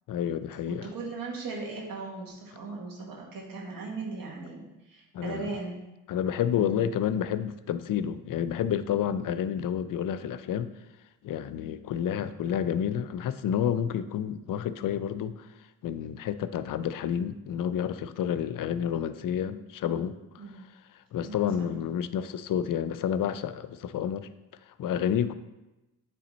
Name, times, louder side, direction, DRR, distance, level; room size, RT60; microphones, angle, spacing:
voice 1, 0.1-0.9 5.1-5.5 6.1-10.7 11.2-15.5 15.8-20.7 21.1-24.3 24.7-25.3, left 9 dB, 65° left, 13 dB, 0.5 m, -30 dB
voice 2, 0.7-5.8 6.5-6.9 20.4-20.6 21.2-21.7, right 3 dB, 75° right, -1 dB, 1.8 m, -38 dB
8.5 x 3.3 x 4.1 m, 1.0 s
supercardioid pair, 55°, 35 cm